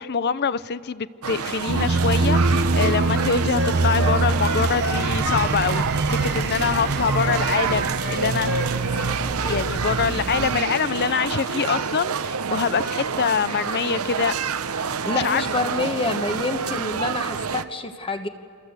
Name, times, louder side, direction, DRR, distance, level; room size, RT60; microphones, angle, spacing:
voice 1, 0.0-8.8 9.5-14.4 15.1-15.6, left 6 dB, 50° left, 0.6 m, -25 dB
sound 1, 1.2-17.6, right 6 dB, 85° right, 0.8 m, -28 dB
sound 2, 1.7-10.6, right 3 dB, 50° right, 0.8 m, -24 dB
Wind instrument woodwind instrument, 2.7-5.9 6.2-7.7 8.0-9.1 9.4-9.7, left 2 dB, 80° left, 3.9 m, -32 dB
voice 2, 15.0-18.3, left 2 dB, 25° left, 1.3 m, -27 dB
28.0 x 25.0 x 8.1 m
head